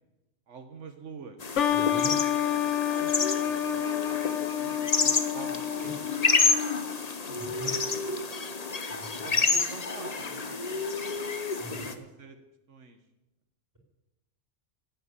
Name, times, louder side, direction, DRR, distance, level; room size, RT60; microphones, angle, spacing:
voice 1, 0.5-1.4 2.4-4.3 4.6-6.1 7.3-7.8 9.2-11.4 11.7-12.4 12.7-13.0, right 5 dB, 85° right, 7 dB, 1.5 m, -47 dB
sound 1, 1.4-11.9, left 4 dB, 35° left, 1.0 m, -29 dB
sound 2, 1.6-7.0, left 10 dB, 80° left, 1.3 m, -29 dB
voice 2, 1.7-2.1 5.8-5.9 7.4-7.7 8.9-9.4 11.6-12.0, right 2 dB, 15° right, -1 dB, 4.6 m, -43 dB
17.0 x 8.5 x 8.2 m, 0.99 s
omnidirectional pair, 1.2 m